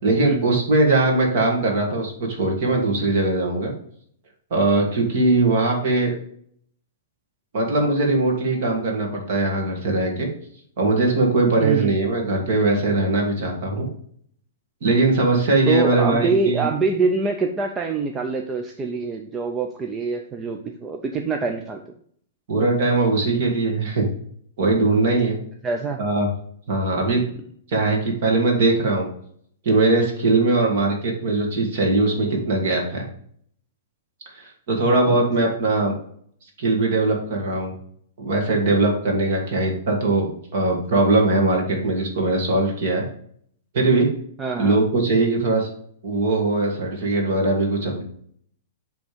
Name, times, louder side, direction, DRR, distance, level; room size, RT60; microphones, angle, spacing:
voice 1, 0.0-3.7 4.5-6.2 7.5-10.3 10.8-13.9 14.8-16.6 22.5-24.1 24.6-25.4 26.0-26.3 26.7-27.2 27.7-29.1 29.7-33.0 34.4-35.9 36.6-37.7 38.2-43.0 43.7-44.1 44.6-45.7 46.0-48.0, right 2 dB, 45° right, 1 dB, 2.1 m, -20 dB
voice 2, 11.6-12.0 15.7-21.8 25.6-26.0 35.0-35.5 44.4-44.8, right 4 dB, 10° right, 3 dB, 0.4 m, -25 dB
7.8 x 3.5 x 5.1 m, 0.62 s
hypercardioid pair, 180°, 0 cm